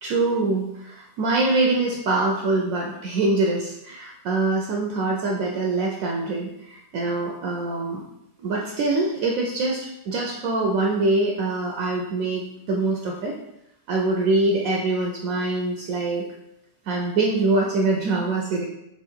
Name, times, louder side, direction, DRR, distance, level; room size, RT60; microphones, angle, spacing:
voice 1, 0.0-8.0 8.4-13.3 13.9-16.2 16.9-18.7, right 2 dB, 70° right, 0 dB, 0.9 m, -24 dB
3.7 x 2.9 x 4.2 m, 0.85 s
omnidirectional pair, 1.7 m